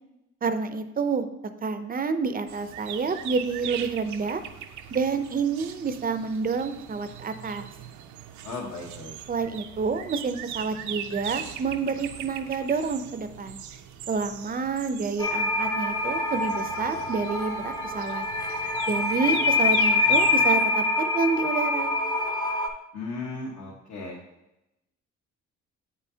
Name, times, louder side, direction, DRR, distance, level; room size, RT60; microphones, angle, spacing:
voice 1, 0.4-1.3 1.6-4.4 4.9-7.7 9.3-13.6 14.1-18.3 18.9-21.9, right 5 dB, 30° right, 10 dB, 0.5 m, -28 dB
sound 1, 2.5-20.5, right 9 dB, 75° right, 0.5 m, -40 dB
voice 2, 8.4-9.1 22.9-24.2, left 3 dB, 65° left, -4 dB, 1.3 m, -36 dB
sound 2, 15.2-22.7, left 3 dB, 15° left, 0.6 m, -25 dB
7.9 x 5.6 x 2.7 m, 0.91 s
cardioid pair, 90°, 30 cm